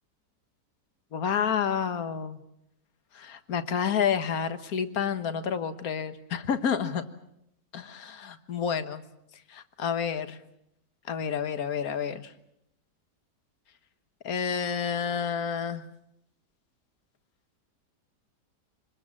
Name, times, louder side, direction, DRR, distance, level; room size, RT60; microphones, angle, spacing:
voice 1, 1.1-2.4 3.1-7.0 7.7-9.0 9.5-10.4 11.1-12.3 14.2-15.8, left 7 dB, 60° left, 10 dB, 1.8 m, -29 dB
26.5 x 20.5 x 7.5 m, 0.80 s
omnidirectional pair, 1.8 m